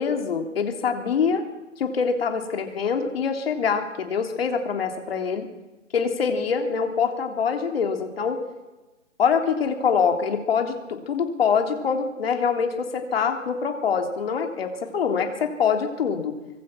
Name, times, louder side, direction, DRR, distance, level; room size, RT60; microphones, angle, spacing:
voice 1, 0.0-1.5 1.8-5.5 5.9-8.4 9.2-16.4, left 6 dB, 50° left, 5 dB, 3.6 m, -24 dB
24.5 x 23.5 x 6.1 m, 1.1 s
hypercardioid pair, 155°, 38 cm